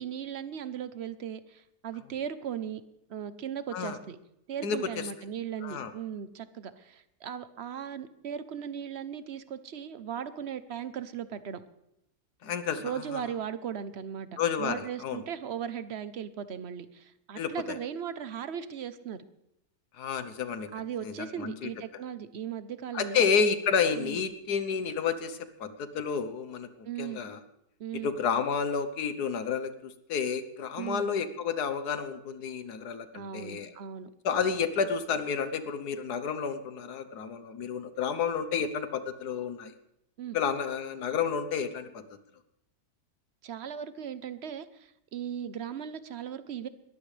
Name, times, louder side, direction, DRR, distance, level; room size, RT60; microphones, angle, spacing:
voice 1, 0.0-2.8 3.1-4.2 4.5-11.6 12.7-14.3 14.6-19.2 20.7-23.2 24.0-24.2 26.8-27.2 27.8-28.1 30.8-31.0 33.1-34.1 40.2-40.4 43.4-46.7, right 8 dB, 50° right, 13 dB, 0.9 m, -37 dB
voice 2, 4.6-5.1 5.6-5.9 12.4-13.2 14.4-15.2 17.3-17.8 20.0-20.7 21.0-21.7 22.9-27.4 27.9-33.7 34.2-39.7 40.3-42.0, left 6 dB, 85° left, 10 dB, 1.6 m, -30 dB
21.5 x 14.5 x 3.3 m, 0.81 s
omnidirectional pair, 1.6 m